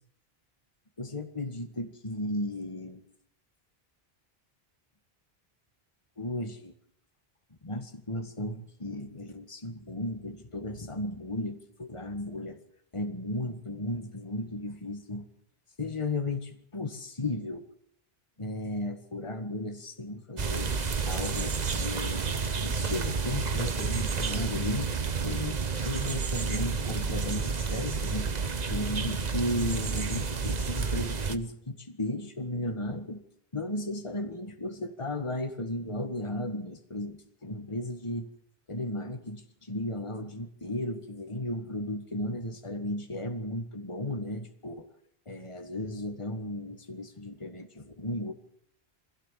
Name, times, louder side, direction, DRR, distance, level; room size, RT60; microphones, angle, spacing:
voice 1, 1.0-3.0 6.2-6.7 7.6-12.6 12.9-15.3 15.8-17.7 18.4-20.7 21.1-22.3 22.6-24.9 25.2-28.3 28.7-33.2 33.5-38.3 38.7-44.9 45.3-48.3, left 1 dB, 30° left, 6 dB, 1.8 m, -35 dB
sound 1, 20.4-31.4, right 5 dB, 45° right, 1.1 m, -30 dB
23.5 x 16.0 x 7.5 m, 0.71 s
omnidirectional pair, 1.0 m